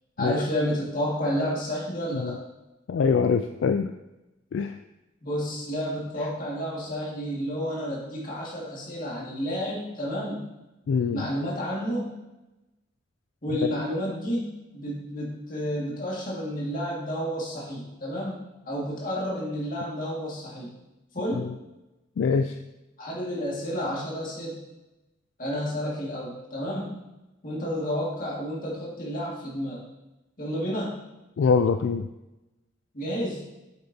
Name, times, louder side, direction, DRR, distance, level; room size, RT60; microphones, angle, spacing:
voice 1, 0.2-2.4 5.2-10.5 11.1-12.1 13.4-20.7 21.1-21.5 23.0-24.6 25.4-27.0 27.4-29.8 30.4-31.0 32.9-33.4, equal, 40° left, -5 dB, 2.0 m, -30 dB
voice 2, 2.9-3.9 4.5-4.8 10.9-11.3 13.6-13.8 21.3-21.5 22.2-22.6 31.4-32.1, left 5 dB, 70° left, 7 dB, 0.3 m, -24 dB
8.2 x 6.6 x 2.8 m, 0.99 s
head